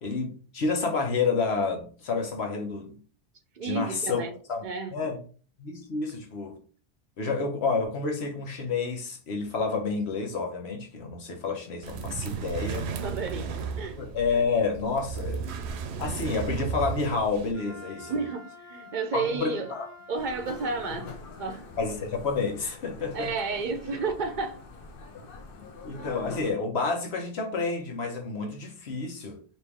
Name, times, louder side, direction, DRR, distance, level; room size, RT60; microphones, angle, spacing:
voice 1, 0.0-3.0 3.6-4.2 4.5-4.6 4.9-5.2 5.6-6.6 7.2-12.9 14.0-15.4 16.0-18.1 19.1-19.9 21.8-23.3 25.5-29.4, left 4 dB, 75° left, 1.2 m, -29 dB
voice 2, 3.5-4.3 4.6-5.1 12.3-12.4 13.0-14.0 18.0-19.7 20.1-21.1 21.4-21.7 23.0-24.6 26.0-26.2, right 4 dB, 55° right, 0.6 m, -32 dB
sound 1, 11.8-17.5, right 6 dB, 90° right, 0.9 m, -34 dB
Wind instrument woodwind instrument, 17.5-21.2, left 2 dB, 15° left, 0.8 m, -47 dB
sound 2, 20.1-26.5, left 4 dB, 60° left, 0.8 m, -44 dB
4.3 x 2.6 x 3.4 m
omnidirectional pair, 1.1 m